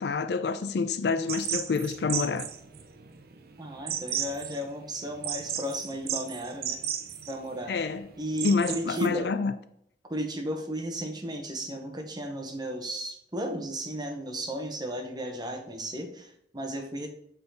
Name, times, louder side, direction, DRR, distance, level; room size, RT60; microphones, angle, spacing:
voice 1, 0.0-2.5 7.7-8.1 8.4-9.5, left 4 dB, 65° left, 0.4 m, -27 dB
sound 1, 1.3-9.1, right 9 dB, 60° right, 0.6 m, -35 dB
voice 2, 3.6-6.8 7.3-7.7 8.2-9.3 10.1-17.1, equal, 25° right, 0.9 m, -34 dB
6.9 x 3.9 x 4.0 m
head